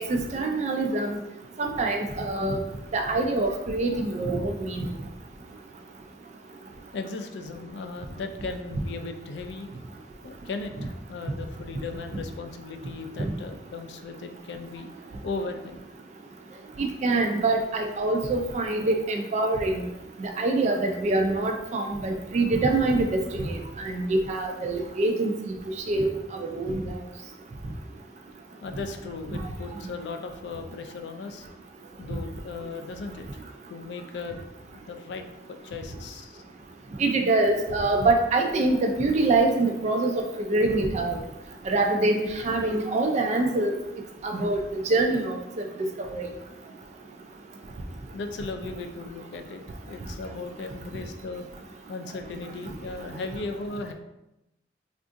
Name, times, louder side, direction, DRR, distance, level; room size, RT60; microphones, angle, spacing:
voice 1, 0.1-1.2 1.6-2.6 2.9-4.9 16.8-19.8 20.2-25.3 25.9-26.1 26.4-26.8 37.0-41.2 41.7-43.7 44.2-45.6 46.0-46.2, right 2 dB, 40° right, 4 dB, 0.3 m, -25 dB
voice 2, 6.9-9.7 10.2-14.9 15.2-15.8 28.6-31.5 32.0-33.2 33.7-36.4 48.1-49.6 49.9-51.5 51.9-53.9, left 3 dB, 70° left, 6 dB, 0.3 m, -37 dB
3.6 x 2.5 x 2.5 m, 0.90 s
head